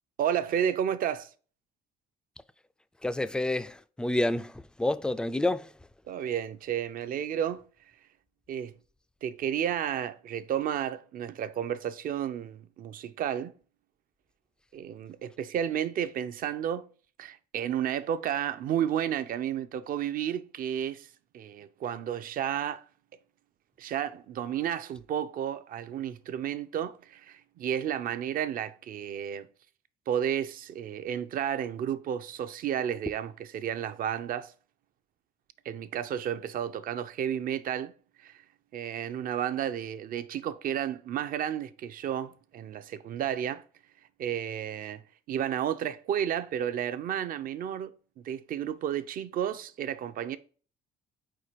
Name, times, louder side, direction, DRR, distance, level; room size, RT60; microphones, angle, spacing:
voice 1, 0.2-1.3 6.1-7.6 8.5-8.7 9.2-13.5 14.7-16.9 17.2-21.1 21.3-22.8 23.8-29.5 30.1-34.5 35.6-37.9 38.2-38.4 38.7-43.6 44.2-45.0 45.3-47.9 48.2-50.4, right 9 dB, 55° right, 0.6 m, -32 dB
voice 2, 3.0-5.7, left 1 dB, 5° left, 0.3 m, -29 dB
4.5 x 4.4 x 5.0 m
cardioid pair, 110°, 17 cm